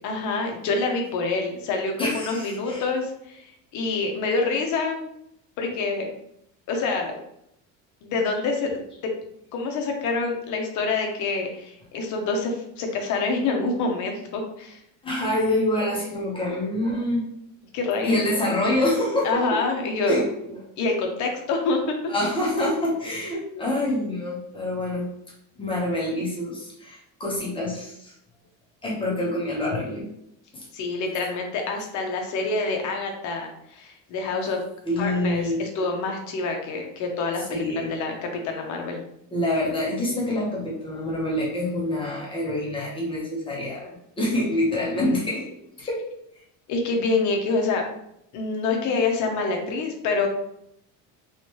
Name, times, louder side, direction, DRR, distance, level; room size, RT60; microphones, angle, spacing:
voice 1, 0.0-5.1 5.6-6.1 6.7-7.1 8.0-8.7 9.0-9.1 9.5-14.8 17.7-18.2 19.2-20.2 20.8-21.9 30.7-34.6 35.0-38.1 38.4-39.0 46.7-47.9 48.3-50.3, left 3 dB, 45° left, 2 dB, 0.8 m, -26 dB
voice 2, 2.0-2.8 15.0-17.2 18.0-19.6 20.1-20.3 22.1-25.1 25.6-28.1 28.8-30.1 30.5-30.6 34.8-35.6 37.5-37.9 39.3-43.9 44.2-45.5 45.9-46.0, left 1 dB, 15° left, -5 dB, 1.0 m, -26 dB
3.2 x 3.1 x 3.0 m, 0.76 s
cardioid pair, 165°, 40 cm